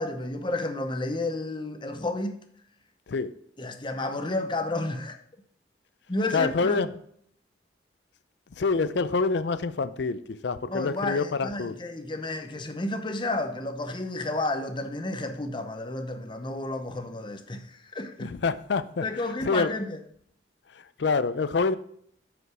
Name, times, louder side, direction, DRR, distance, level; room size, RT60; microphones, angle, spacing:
voice 1, 0.0-2.4 3.6-5.2 6.1-6.8 10.7-18.3 19.0-20.0, left 2 dB, 25° left, 0.7 m, -31 dB
voice 2, 6.3-6.9 8.6-11.7 18.2-19.1 19.4-19.7 20.7-21.7, left 4 dB, 65° left, 0.4 m, -26 dB
7.9 x 5.1 x 4.8 m
head